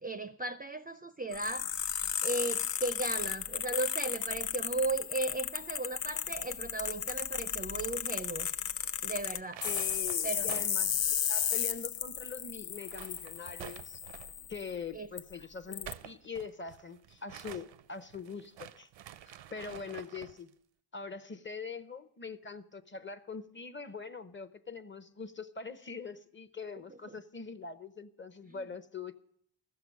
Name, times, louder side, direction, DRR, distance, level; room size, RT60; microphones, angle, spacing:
voice 1, 0.0-1.9 2.2-8.5 9.0-9.6 10.2-10.6 14.9-15.1 26.9-27.1 28.5-28.7, right 2 dB, 20° right, 0.5 m, -36 dB
sound 1, 1.3-14.7 15.2-15.3 15.7-15.9, left 9 dB, 75° left, 0.7 m, -34 dB
sound 2, 9.3-12.0 12.2-12.3 12.7-14.5 15.6-20.4, right 11 dB, 85° right, 0.7 m, -49 dB
voice 2, 9.6-14.0 14.5-18.9 19.3-20.5 20.9-29.2, left 5 dB, 25° left, 0.8 m, -43 dB
15.0 x 6.8 x 9.6 m
cardioid pair, 95°, 44 cm